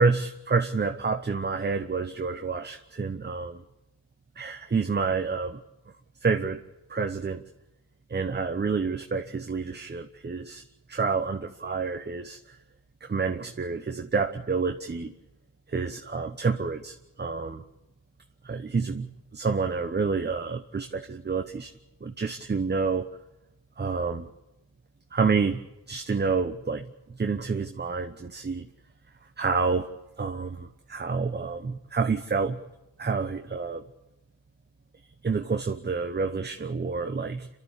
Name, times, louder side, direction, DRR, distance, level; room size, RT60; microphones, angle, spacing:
voice 1, 0.0-3.6 4.4-5.6 6.2-6.6 6.9-7.4 8.1-10.6 10.9-12.6 13.1-15.1 15.7-17.6 18.4-21.7 22.0-23.1 23.8-24.3 25.1-28.7 29.4-29.9 30.2-32.6 33.0-33.8 35.2-37.5, right 4 dB, 20° right, 6 dB, 0.9 m, -28 dB
27.5 x 12.5 x 8.5 m, 0.98 s
cardioid pair, 75°, 50 cm